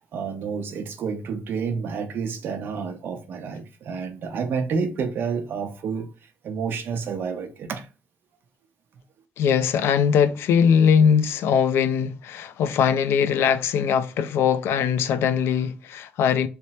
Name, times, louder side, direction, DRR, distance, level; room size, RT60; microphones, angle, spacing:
voice 1, 0.1-6.1 6.4-7.9, right 5 dB, 55° right, 0.7 m, -29 dB
voice 2, 9.4-16.5, left 7 dB, 75° left, 0.4 m, -21 dB
3.3 x 2.0 x 4.1 m
cardioid pair, 160°, 4 cm